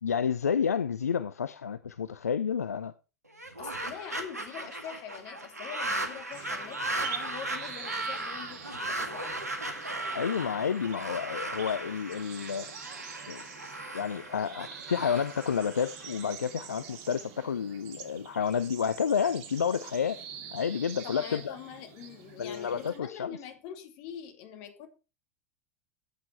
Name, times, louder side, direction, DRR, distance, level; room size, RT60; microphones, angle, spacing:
voice 1, 0.0-2.9 10.1-12.7 13.3-13.4 13.9-20.2 20.5-21.5 22.4-23.4, left 7 dB, 80° left, 0.5 m, -30 dB
sound 1, 3.3-16.5, right 2 dB, 85° right, 2.0 m, -37 dB
voice 2, 3.6-9.4 21.0-24.9, left 9 dB, 50° left, 2.7 m, -44 dB
sound 2, 6.3-23.0, right 8 dB, 50° right, 2.4 m, -46 dB
13.5 x 8.2 x 4.5 m
figure-of-eight pair, 80°, 8 cm